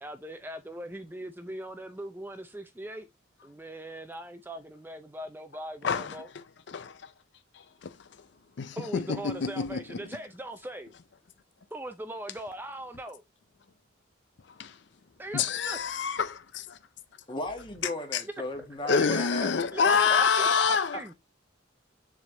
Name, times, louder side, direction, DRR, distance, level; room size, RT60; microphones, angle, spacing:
voice 1, 0.0-3.1 3.4-6.3 8.8-10.9 11.7-13.2 15.2-15.8 18.6-21.1, right 1 dB, 10° right, 0.5 m, -40 dB
voice 2, 5.8-7.1 7.5-8.3 8.6-10.0 14.4-14.8 15.3-16.6 18.1-18.2 18.9-21.0, left 6 dB, 65° left, 0.5 m, -28 dB
voice 3, 17.3-19.5 19.8-20.8, left 2 dB, 25° left, 1.5 m, -35 dB
7.2 x 3.5 x 3.8 m
head